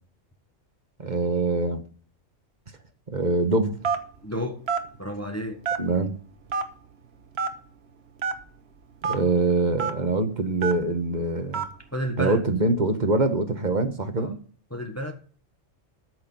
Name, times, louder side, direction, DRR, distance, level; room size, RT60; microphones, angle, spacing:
voice 1, 1.0-1.8 3.1-3.8 5.8-6.1 9.0-11.7 12.2-14.4, right 2 dB, 35° right, 1.3 m, -24 dB
Telephone, 3.8-4.2 4.7-4.9 5.6-6.0 6.5-6.6 7.4-7.5 8.2-8.3 9.0-9.2 9.8-9.9 10.6-10.8 11.5-11.7, right 6 dB, 55° right, 1.3 m, -26 dB
voice 2, 4.2-4.6 5.0-5.6 11.9-12.4 14.2-14.4 14.7-15.1, equal, 15° left, 1.1 m, -31 dB
13.5 x 6.2 x 5.4 m
omnidirectional pair, 1.3 m